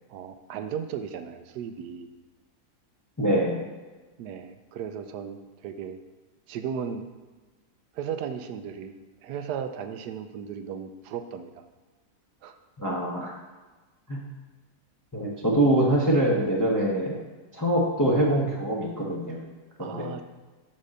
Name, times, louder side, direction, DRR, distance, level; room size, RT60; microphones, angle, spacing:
voice 1, 0.1-2.1 4.2-6.0 6.5-7.0 7.9-8.9 9.2-11.5 12.4-12.6 19.8-20.2, right 7 dB, 85° right, 8 dB, 1.2 m, -35 dB
voice 2, 3.2-3.6 12.8-13.3 14.1-14.2 15.1-17.2 17.5-19.5 19.8-20.1, right 1 dB, 15° left, -4 dB, 0.9 m, -24 dB
7.5 x 4.1 x 6.5 m, 1.3 s
omnidirectional pair, 1.7 m